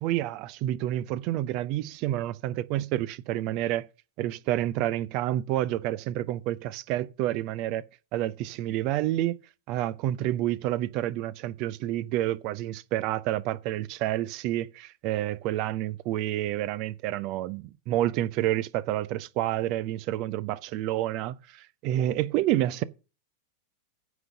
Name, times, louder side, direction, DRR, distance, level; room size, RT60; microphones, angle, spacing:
voice 1, 0.0-3.9 4.2-7.8 8.1-9.4 9.7-22.8, right 14 dB, 40° right, 0.6 m, -29 dB
9.5 x 5.2 x 7.7 m
figure-of-eight pair, 90°, 0 cm